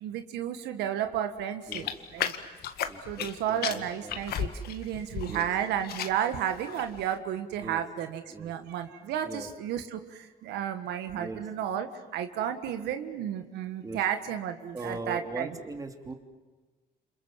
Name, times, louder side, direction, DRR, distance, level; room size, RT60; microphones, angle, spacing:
voice 1, 0.0-1.8 2.1-2.3 3.1-10.0 10.4-15.5, right 10 dB, 80° right, 8 dB, 1.7 m, -32 dB
sound 1, 1.7-3.4 3.6-5.5 5.8-6.3 6.7-7.0, left 9 dB, 65° left, 1.9 m, -34 dB
voice 2, 2.8-4.2 5.3-5.5 7.6-7.8 8.3-8.5 9.2-9.5 11.1-11.4 13.8-14.0 14.7-16.1, right 3 dB, 20° right, 5 dB, 3.1 m, -40 dB
29.0 x 27.0 x 7.6 m, 1.2 s
cardioid pair, 110°, 17 cm